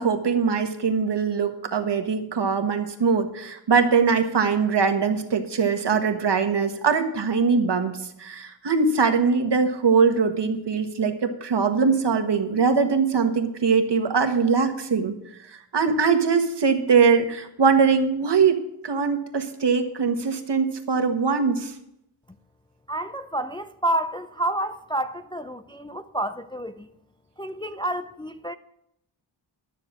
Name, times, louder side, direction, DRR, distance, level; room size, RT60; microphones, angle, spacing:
voice 1, 0.0-15.1 15.7-21.7, right 5 dB, 60° right, 1.5 m, -22 dB
voice 2, 22.9-26.9 27.4-28.5, right 1 dB, 10° left, 0.4 m, -29 dB
12.5 x 6.8 x 7.4 m
wide cardioid pair, 85°, 47 cm